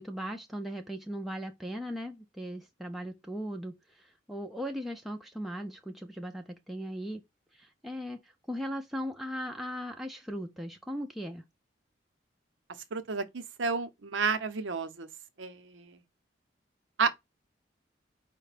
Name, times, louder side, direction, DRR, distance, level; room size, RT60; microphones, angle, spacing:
voice 1, 0.0-7.2 7.5-11.4, equal, ahead, 0.4 m, -38 dB
voice 2, 12.9-15.1 15.4-16.0 17.0-17.2, right 4 dB, 85° right, 0.7 m, -31 dB
4.9 x 2.2 x 4.8 m
head